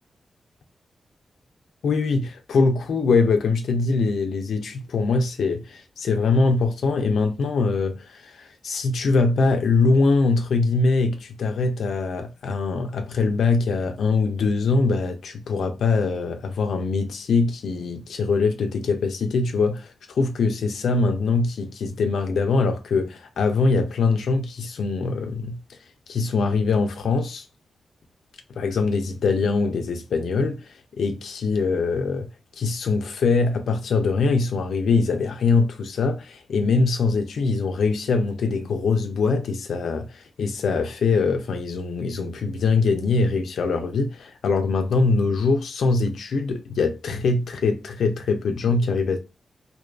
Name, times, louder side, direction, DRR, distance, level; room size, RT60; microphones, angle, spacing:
voice 1, 1.8-25.6 26.1-27.5 28.6-32.3 32.6-49.2, left 4 dB, 85° left, 0.3 m, -23 dB
2.6 x 2.3 x 2.2 m
cardioid pair, 65°, 0 cm